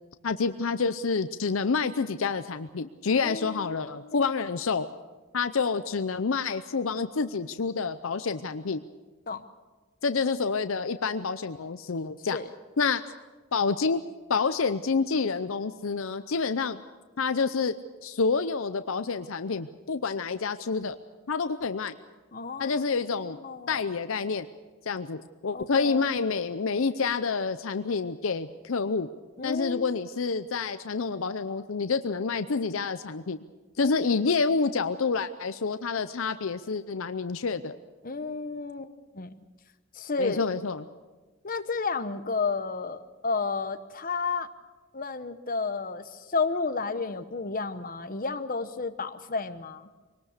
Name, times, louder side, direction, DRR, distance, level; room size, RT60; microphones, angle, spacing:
voice 1, 0.2-4.9 5.3-8.8 10.0-12.4 12.8-13.0 13.5-14.0 14.3-16.8 17.2-17.7 18.0-21.0 21.3-21.9 22.6-23.4 23.7-24.5 24.8-29.1 29.4-33.4 33.8-37.8 40.2-40.8, left 4 dB, 70° left, 11 dB, 0.6 m, -28 dB
voice 2, 3.2-4.3 9.3-9.4 12.3-12.4 22.3-22.8 23.4-23.8 25.5-26.3 29.4-30.0 33.8-34.0 38.0-39.3 39.9-40.4 41.4-44.5 44.9-49.9, left 4 dB, 40° left, 9 dB, 1.0 m, -32 dB
24.0 x 19.0 x 6.7 m, 1.3 s
head